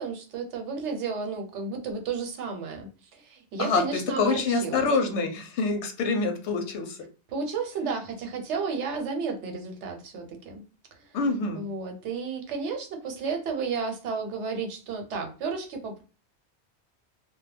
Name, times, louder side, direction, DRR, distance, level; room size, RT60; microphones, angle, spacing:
voice 1, 0.0-4.9 7.3-10.6 11.0-11.2 11.5-16.0, right 5 dB, 90° right, 4 dB, 1.0 m, -32 dB
voice 2, 3.6-7.0 11.1-11.6, left 4 dB, 80° left, 5 dB, 0.9 m, -26 dB
2.3 x 2.1 x 3.2 m, 0.34 s
omnidirectional pair, 1.2 m